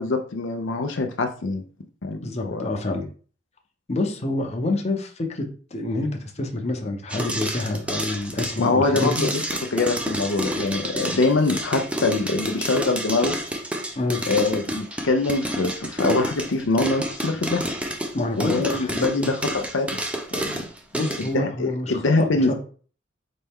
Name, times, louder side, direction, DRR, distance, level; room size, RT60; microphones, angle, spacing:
voice 1, 0.0-1.6 2.0-2.6 8.6-9.4 9.7-13.4 14.3-17.6 18.4-20.0 20.3-20.6 21.2-22.5, left 3 dB, 80° left, 5 dB, 0.6 m, -24 dB
voice 2, 2.2-3.1 3.9-9.2 14.0-14.2 18.1-19.3 20.9-22.5, left 2 dB, 35° left, 3 dB, 0.7 m, -27 dB
sound 1, 7.1-21.3, right 1 dB, 5° right, 0.5 m, -29 dB
4.2 x 3.3 x 3.6 m, 0.41 s
head